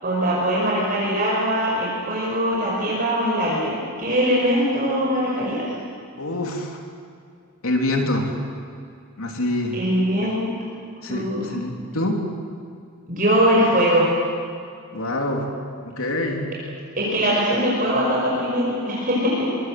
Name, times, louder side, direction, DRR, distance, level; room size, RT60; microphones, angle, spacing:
voice 1, 0.0-5.7 9.7-10.5 11.1-11.6 13.1-14.2 17.0-19.6, equal, 40° right, -4 dB, 5.3 m, -21 dB
voice 2, 6.2-6.7 7.6-8.3 9.2-9.8 11.0-12.2 14.9-15.5 15.9-16.5 17.0-17.1, left 1 dB, 75° left, 2 dB, 3.3 m, -25 dB
24.5 x 23.5 x 7.8 m, 2.4 s
head